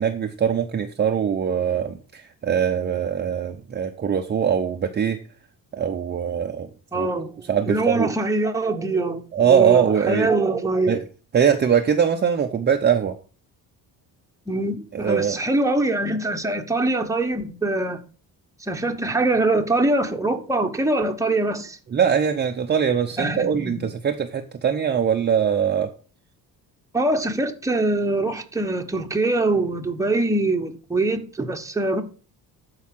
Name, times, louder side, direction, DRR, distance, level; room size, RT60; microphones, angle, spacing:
voice 1, 0.0-5.2 5.7-6.7 6.9-7.1 7.5-8.1 9.3-10.3 10.9-11.0 11.3-13.1 14.9-15.4 21.9-25.9, right 8 dB, 25° right, 0.7 m, -22 dB
voice 2, 6.9-7.3 7.7-11.0 14.5-18.0 18.6-21.8 23.2-23.9 26.9-32.0, right 2 dB, 10° right, 1.1 m, -23 dB
12.0 x 4.8 x 6.0 m
cardioid pair, 135°, 37 cm